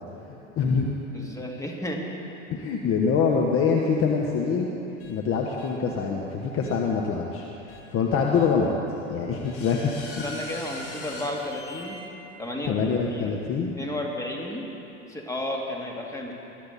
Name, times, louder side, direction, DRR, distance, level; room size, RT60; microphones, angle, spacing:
voice 1, 0.3-0.9 1.2-1.3 2.5-4.7 5.1-7.4 7.9-8.7 9.1-9.9 12.7-13.7, left 5 dB, 35° left, 0 dB, 1.4 m, -24 dB
voice 2, 1.1-2.0 10.2-12.0 12.4-12.8 13.1-13.4 13.8-14.7 15.1-16.3, left 1 dB, 10° left, -1 dB, 2.4 m, -32 dB
sound 1, 5.0-5.1 5.6-5.7 6.6-6.7 7.7-7.8 8.3-8.5 9.4-12.0, left 2 dB, 65° left, 3.8 m, -40 dB
21.5 x 13.0 x 4.2 m, 2.9 s
figure-of-eight pair, 80°, 39 cm